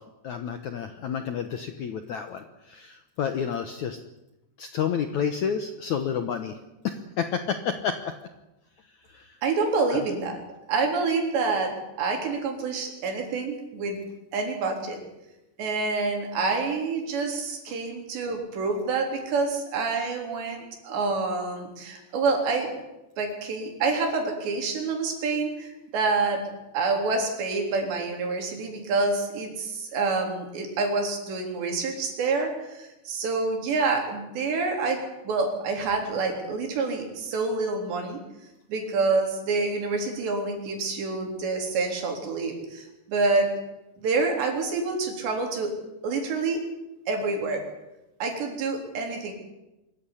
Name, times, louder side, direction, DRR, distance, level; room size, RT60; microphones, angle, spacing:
voice 1, 0.0-4.0 4.6-6.5 6.8-8.1 9.1-9.4 9.9-10.0, left 7 dB, 70° left, 8 dB, 1.8 m, -30 dB
voice 2, 9.4-10.4 10.7-14.0 14.3-15.0 15.6-22.7 23.2-26.5 26.7-38.2 38.7-43.5 44.0-45.7 46.0-46.6 47.1-47.7 48.2-49.3, right 3 dB, 80° right, 2 dB, 5.9 m, -27 dB
24.0 x 14.5 x 9.9 m, 0.97 s
omnidirectional pair, 4.9 m